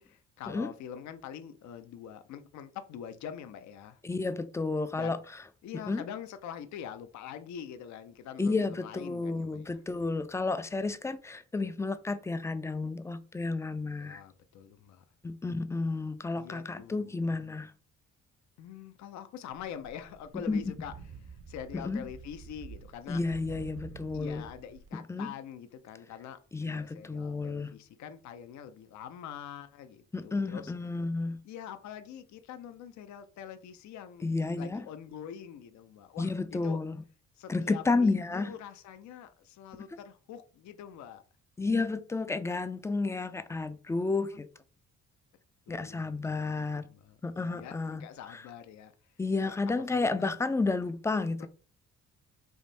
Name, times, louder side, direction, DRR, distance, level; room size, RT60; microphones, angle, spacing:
voice 1, 0.0-4.0 4.9-5.2 5.6-9.8 13.9-15.0 16.3-17.4 18.6-20.9 21.3-23.2 24.1-30.7 31.4-34.2 34.6-36.8 37.4-41.2 45.7-49.1 49.4-50.4 51.4-51.5, left 9 dB, 65° left, 0.5 m, -45 dB
voice 2, 4.0-5.2 5.9-6.0 8.4-14.2 15.2-17.7 20.5-20.7 21.7-22.1 23.1-24.5 24.9-25.3 26.5-27.7 30.1-31.4 34.2-34.9 36.2-37.0 37.5-38.5 41.6-44.5 45.7-46.9 47.2-48.4 49.2-51.5, left 3 dB, 10° left, 0.3 m, -31 dB
sound 1, 19.5-24.9, right 6 dB, 50° right, 0.6 m, -49 dB
3.6 x 2.5 x 4.0 m
cardioid pair, 90°, 30 cm